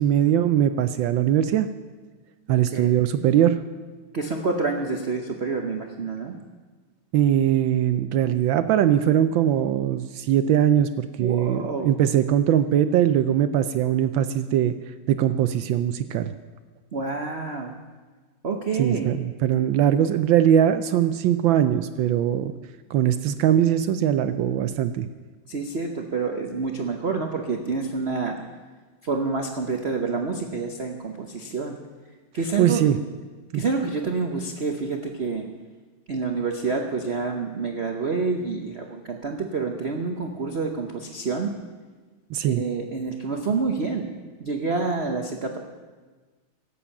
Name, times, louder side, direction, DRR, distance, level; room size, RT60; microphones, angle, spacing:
voice 1, 0.0-1.7 2.5-3.6 7.1-14.7 15.1-16.3 18.8-22.5 22.9-25.1 32.6-33.0 33.5-33.6 42.3-42.6, right 10 dB, 75° right, 11 dB, 1.3 m, -21 dB
voice 2, 2.5-2.9 4.1-6.4 11.2-11.9 16.9-17.8 18.4-19.1 25.5-28.4 29.0-31.8 32.3-32.8 33.5-35.5 36.1-41.6 42.5-44.1 44.4-45.6, right 4 dB, 50° right, 3 dB, 0.8 m, -28 dB
16.5 x 8.4 x 7.1 m, 1.4 s
omnidirectional pair, 2.3 m